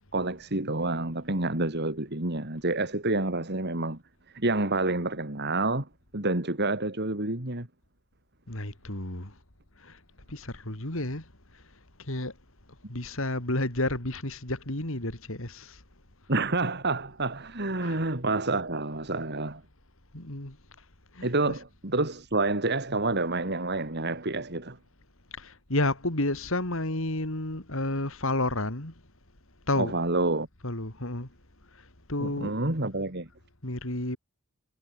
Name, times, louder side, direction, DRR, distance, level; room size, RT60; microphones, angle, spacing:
voice 1, 0.1-4.0 4.3-5.9 6.1-7.7 16.3-19.6 21.2-24.8 29.8-30.5 32.2-33.3, right 2 dB, 50° right, 3.2 m, -28 dB
voice 2, 8.5-9.3 9.8-10.0 10.3-11.3 11.5-11.6 12.0-12.3 12.9-15.8 17.8-18.0 20.1-20.6 21.1-21.6 25.4-28.9 29.7-30.0 30.6-31.3 31.7-32.5 33.6-34.2, left 2 dB, 65° left, 4.0 m, -31 dB
head